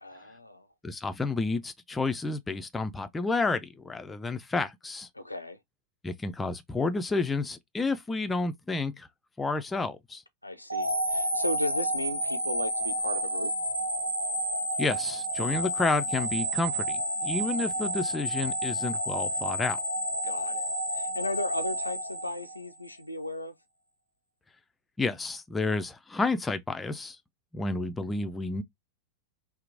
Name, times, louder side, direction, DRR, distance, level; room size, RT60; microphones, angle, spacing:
voice 1, 0.0-0.7 5.1-5.6 10.4-13.5 20.2-23.5, left 1 dB, 85° left, 0.4 m, -35 dB
voice 2, 0.8-5.1 6.0-9.1 9.4-10.2 14.8-19.8 25.0-27.2 27.5-28.6, left 3 dB, 10° left, 0.4 m, -30 dB
sound 1, 10.7-22.9, right 1 dB, 85° right, 0.5 m, -30 dB
2.9 x 2.0 x 2.5 m
figure-of-eight pair, 90°, 0 cm